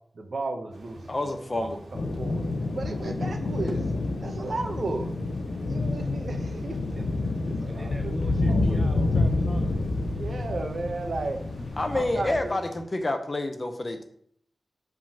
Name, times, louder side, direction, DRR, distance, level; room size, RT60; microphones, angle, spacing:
voice 1, 0.1-2.4 2.7-3.8 4.2-5.1 5.7-7.3 7.6-8.1 8.5-8.9 10.2-11.4 11.9-12.5, right 3 dB, 55° right, 4 dB, 0.9 m, -34 dB
sound 1, 0.7-12.8, right 1 dB, 75° right, 1.9 m, -47 dB
voice 2, 1.1-1.8 11.8-12.6 12.9-14.0, left 2 dB, 30° left, 6 dB, 0.7 m, -28 dB
sound 2, 1.9-12.4, left 2 dB, 65° left, 0.6 m, -28 dB
voice 3, 7.6-9.7 12.3-12.4, equal, 5° right, 3 dB, 0.4 m, -40 dB
5.0 x 3.7 x 5.8 m, 0.65 s
wide cardioid pair, 140°, 0 cm